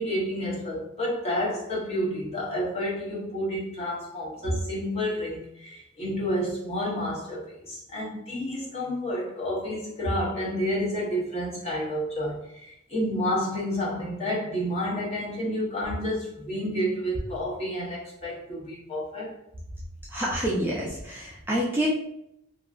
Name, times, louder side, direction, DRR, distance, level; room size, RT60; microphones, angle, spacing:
voice 1, 0.0-19.4, equal, 30° left, 0.9 m, -30 dB
voice 2, 20.1-21.9, right 1 dB, 10° right, 0.4 m, -27 dB
2.8 x 2.4 x 2.4 m
head